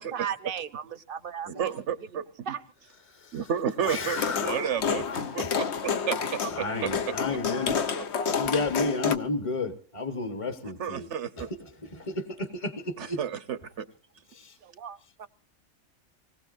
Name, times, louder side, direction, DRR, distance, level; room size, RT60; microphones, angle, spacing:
voice 1, 0.0-1.7 2.5-2.6 14.6-15.3, right 8 dB, 50° right, 12 dB, 1.0 m, -36 dB
voice 2, 1.5-2.3 3.3-6.9 8.0-8.1 10.8-11.5 13.0-13.9, right 8 dB, 65° right, 11 dB, 1.3 m, -32 dB
voice 3, 3.1-3.4 3.8-4.8 5.1-5.2 6.6-7.8 8.3-11.1 11.4-13.2 14.3-14.6, left 3 dB, 25° left, 7 dB, 1.1 m, -32 dB
sound 1, 4.2-9.2, left 6 dB, 60° left, 1.1 m, -29 dB
25.5 x 19.0 x 2.6 m, 0.40 s
omnidirectional pair, 1.3 m